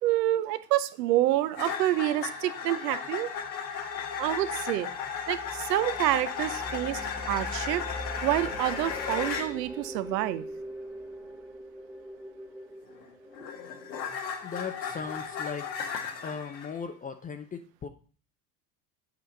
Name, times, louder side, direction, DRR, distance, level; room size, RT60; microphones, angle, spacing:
voice 1, 0.0-3.3 4.2-4.9 5.3-7.0 7.3-7.8 8.2-10.5, right 15 dB, 75° right, 14 dB, 0.8 m, -27 dB
sound 1, 1.6-9.5 12.9-16.7, left 6 dB, 85° left, 1.4 m, -35 dB
sound 2, 4.0-14.3, equal, 5° right, 1.4 m, -43 dB
voice 2, 14.4-15.7 16.2-17.9, left 6 dB, 20° left, 7 dB, 0.4 m, -37 dB
8.4 x 5.0 x 3.9 m, 0.41 s
hypercardioid pair, 90°, 49 cm